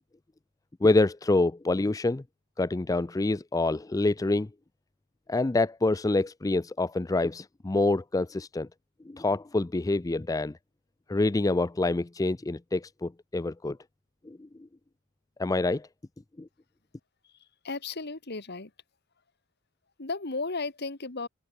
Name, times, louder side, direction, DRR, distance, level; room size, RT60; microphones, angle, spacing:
voice 1, 0.8-2.2 2.6-4.5 5.3-8.7 9.1-10.5 11.1-13.8 14.3-14.4 15.4-15.9 16.4-16.5, left 2 dB, 15° left, 0.4 m, -26 dB
voice 2, 17.2-18.7 20.0-21.3, left 3 dB, 50° left, 1.8 m, -35 dB
head